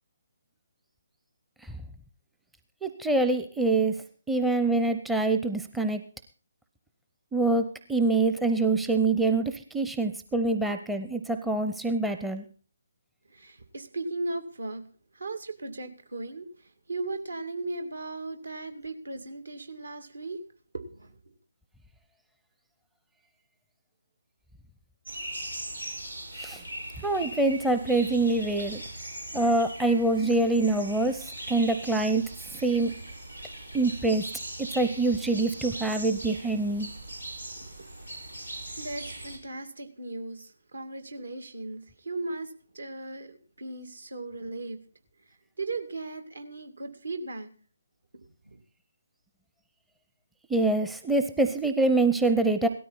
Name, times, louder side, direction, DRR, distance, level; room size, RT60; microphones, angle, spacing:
voice 1, 2.8-3.9 4.3-6.0 7.3-12.4 26.4-26.6 27.0-28.8 29.3-32.2 32.6-32.9 33.7-34.2 34.6-36.9 50.5-52.7, right 2 dB, 5° right, 6 dB, 0.7 m, -25 dB
voice 2, 13.3-14.8 15.1-20.4 20.7-21.1 37.5-37.9 38.8-44.8 45.6-47.5 48.1-48.6, right 2 dB, 65° right, 7 dB, 2.4 m, -37 dB
sound 1, 25.0-39.4, right 1 dB, 85° right, 4.5 m, -40 dB
17.5 x 13.0 x 4.1 m, 0.39 s
figure-of-eight pair, 145°, 0 cm